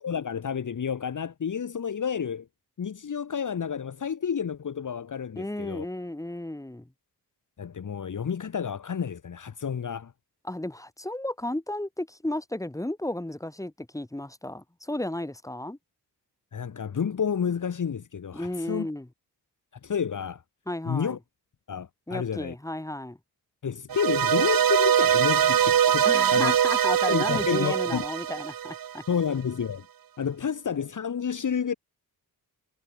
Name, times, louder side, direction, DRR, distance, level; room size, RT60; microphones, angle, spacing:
voice 1, 0.0-2.5 2.8-5.9 7.6-10.1 16.5-18.9 19.8-20.4 20.9-21.2 21.7-22.5 23.6-26.1 26.3-26.6 27.1-28.0 29.1-29.9 30.2-31.7, left 7 dB, 50° left, 1.8 m, -30 dB
voice 2, 5.3-6.9 10.4-15.8 18.3-19.1 20.7-21.2 22.1-23.2 26.0-29.0, left 1 dB, 10° left, 5.1 m, -33 dB
sound 1, 23.9-29.2, right 9 dB, 55° right, 1.0 m, -23 dB
wide cardioid pair, 130°, 40 cm